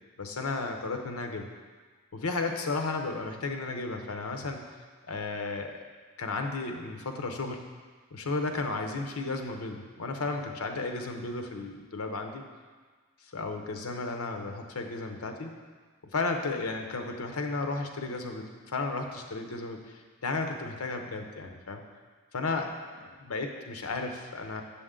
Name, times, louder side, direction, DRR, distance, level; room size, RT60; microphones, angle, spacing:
voice 1, 0.2-1.5 2.1-4.7 5.1-5.8 6.2-7.6 8.1-12.4 13.2-15.6 16.1-21.8 22.3-24.6, left 3 dB, 90° left, 4 dB, 0.8 m, -34 dB
7.0 x 6.8 x 3.8 m, 1.5 s
head